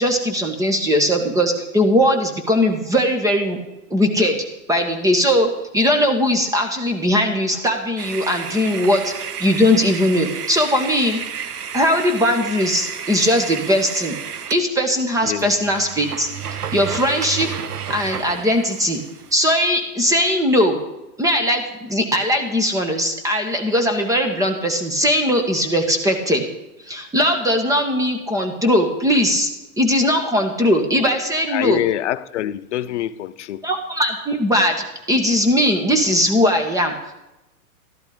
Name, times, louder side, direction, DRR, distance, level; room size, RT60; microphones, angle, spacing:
voice 1, 0.0-3.6 3.9-4.4 4.7-5.5 5.7-9.1 9.4-11.2 11.7-14.1 14.5-16.3 16.7-17.5 17.9-19.0 19.3-20.8 21.2-26.4 26.9-29.5 29.8-31.8 33.6-34.8 35.1-37.2, equal, 5° right, 5 dB, 1.6 m, -19 dB
sound 1, 8.0-14.7 15.1-15.2 15.4-19.5, right 7 dB, 85° right, 1.3 m, -32 dB
voice 2, 15.2-15.5 31.5-33.6, left 13 dB, 50° left, 15 dB, 0.8 m, -25 dB
13.5 x 11.5 x 5.2 m, 0.93 s
hypercardioid pair, 140°, 45 cm